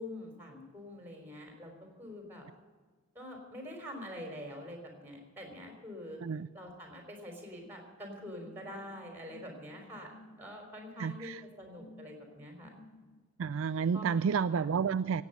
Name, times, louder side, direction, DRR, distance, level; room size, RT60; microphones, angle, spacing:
voice 1, 0.0-1.7 2.0-2.5 3.1-6.2 6.5-12.7 13.9-14.7, left 1 dB, 10° right, 2 dB, 3.7 m, -45 dB
sound 1, 8.4-13.2, left 1 dB, 55° left, 1.3 m, -56 dB
voice 2, 11.0-11.4 13.4-15.2, right 6 dB, 60° right, 14 dB, 0.4 m, -30 dB
17.0 x 8.5 x 8.0 m, 1.4 s
head